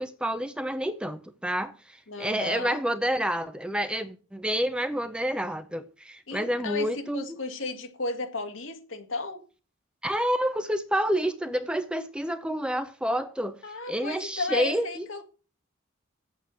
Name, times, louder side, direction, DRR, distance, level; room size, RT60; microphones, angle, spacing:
voice 1, 0.0-7.4 10.0-13.6 13.9-15.1, equal, 5° right, 0.6 m, -29 dB
voice 2, 2.1-2.8 6.3-9.4 13.6-15.2, left 2 dB, 75° left, 1.9 m, -34 dB
9.2 x 8.3 x 6.2 m
head